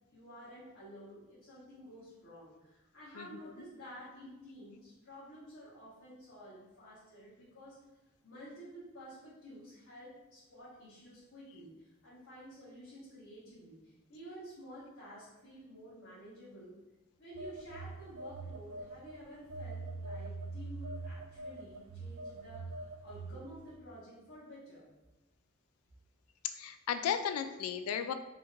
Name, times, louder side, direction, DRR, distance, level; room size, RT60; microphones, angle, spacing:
voice 1, 0.1-7.8 8.2-16.8 17.2-24.9, equal, 65° left, -11 dB, 1.3 m, -51 dB
Telephone, 17.3-19.1 19.5-23.6, right 3 dB, 70° right, 0.4 m, -43 dB
voice 2, 26.4-28.1, left 8 dB, 90° left, 12 dB, 0.3 m, -35 dB
4.9 x 3.0 x 2.5 m, 1.0 s
head